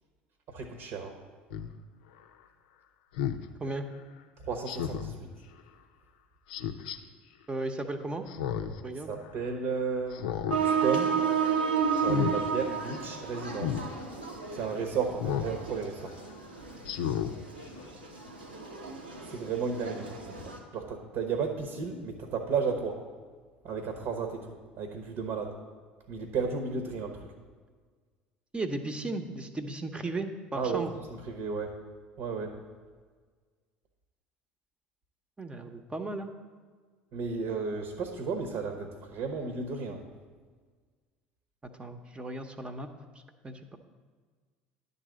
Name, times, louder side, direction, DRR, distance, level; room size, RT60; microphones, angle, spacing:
voice 1, 0.5-1.1 4.5-5.3 8.9-10.2 10.6-11.1 12.0-13.8 14.5-16.1 19.2-23.0 23.6-24.5 24.8-25.5 26.1-27.2 30.5-30.8 31.1-31.7 32.2-32.5 37.1-40.0, right 5 dB, 55° right, 5 dB, 1.1 m, -33 dB
Speech synthesizer, 1.5-1.7 3.2-3.4 4.7-5.1 6.5-7.0 8.3-8.8 9.2-9.3 10.1-10.6 11.0-11.3 11.9-12.3 13.6-13.8 15.2-15.5 16.0-16.1 16.8-17.3 17.8-17.9, left 10 dB, 70° left, 0.5 m, -32 dB
voice 2, 7.5-8.2 8.8-9.1 28.5-30.9 35.4-36.3 41.8-42.9 43.4-43.8, right 2 dB, 20° right, 7 dB, 0.9 m, -35 dB
sound 1, 10.5-20.6, right 6 dB, 85° right, 1.1 m, -32 dB
10.5 x 4.1 x 7.5 m, 1.6 s
figure-of-eight pair, 65°, 5 cm